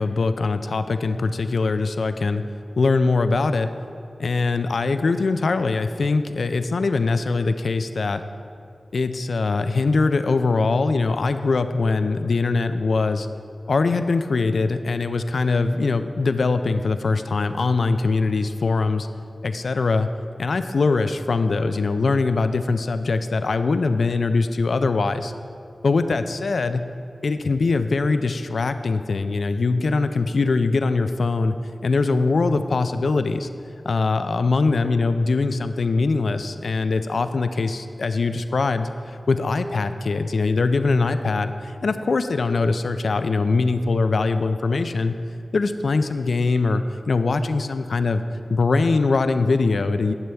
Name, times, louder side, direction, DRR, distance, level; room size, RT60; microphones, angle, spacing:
voice 1, 0.0-2.4 2.8-3.7 4.2-8.2 8.9-13.3 13.7-19.1 19.4-20.1 20.4-25.3 25.8-26.8 27.2-31.6 31.8-33.5 33.9-45.1 45.5-48.2 48.5-50.1, left 3 dB, 85° left, 10 dB, 0.3 m, -22 dB
11.0 x 6.9 x 3.4 m, 2.5 s
wide cardioid pair, 55°, 0 cm